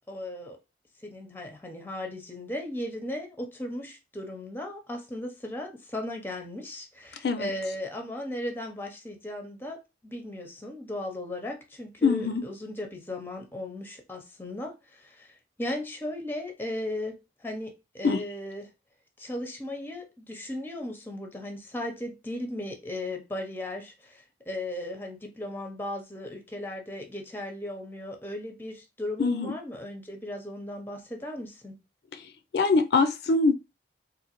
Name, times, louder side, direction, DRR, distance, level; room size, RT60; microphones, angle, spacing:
voice 1, 0.1-0.6 1.0-18.7 19.2-31.8, left 1 dB, 10° left, 0.6 m, -36 dB
voice 2, 12.0-12.4 18.0-18.2 29.2-29.5 32.1-32.2 32.5-33.5, left 4 dB, 65° left, 0.4 m, -23 dB
3.7 x 2.6 x 2.9 m
head